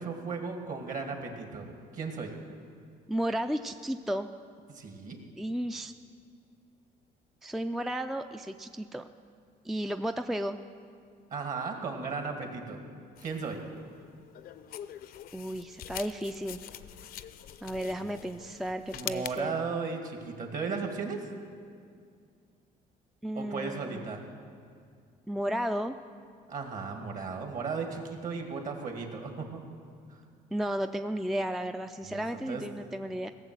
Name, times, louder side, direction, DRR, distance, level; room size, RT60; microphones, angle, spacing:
voice 1, 0.0-2.4 4.7-5.2 11.3-12.8 13.2-13.6 18.0-18.2 18.9-21.2 23.4-24.2 26.5-29.6 32.0-32.6, right 4 dB, 50° right, 4 dB, 2.0 m, -36 dB
voice 2, 3.1-4.3 5.4-5.9 7.4-9.1 9.6-10.6 15.3-16.6 17.6-19.6 23.2-24.0 25.3-26.0 30.5-33.3, equal, ahead, 8 dB, 0.3 m, -33 dB
sound 1, 13.2-19.4, left 11 dB, 60° left, 0.5 m, -44 dB
17.0 x 7.2 x 7.6 m, 2.2 s
cardioid pair, 110°, 17 cm